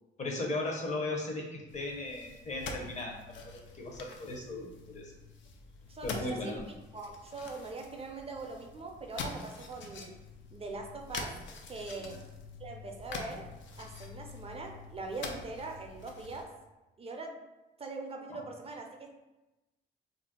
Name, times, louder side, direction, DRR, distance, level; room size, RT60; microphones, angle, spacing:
voice 1, 0.2-5.1 6.0-6.7 12.0-12.2, left 2 dB, 35° left, 0 dB, 0.7 m, -37 dB
sound 1, 1.7-16.5, left 3 dB, 70° left, 0.5 m, -45 dB
voice 2, 5.9-6.6 6.9-10.1 10.5-11.3 11.7-12.2 12.6-13.5 13.8-16.5 17.0-17.4 17.8-19.1, right 3 dB, 30° right, 2 dB, 0.4 m, -42 dB
2.5 x 2.0 x 3.7 m, 1.0 s
cardioid pair, 90°, 20 cm